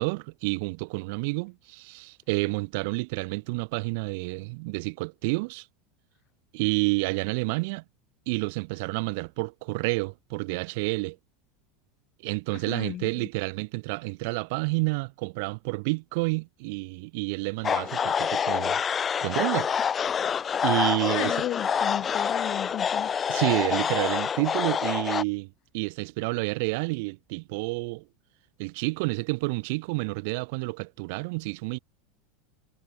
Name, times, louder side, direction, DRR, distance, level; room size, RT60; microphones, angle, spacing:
voice 1, 0.0-5.6 6.5-7.8 8.3-11.2 12.2-18.8 19.2-19.7 20.6-21.3 23.3-28.0 28.6-31.8, right 28 dB, 55° right, 1.1 m, -29 dB
voice 2, 12.7-13.3 21.1-23.4, left 14 dB, 40° left, 2.1 m, -35 dB
sound 1, 17.6-25.2, left 7 dB, 25° left, 1.2 m, -27 dB
figure-of-eight pair, 80°, 0 cm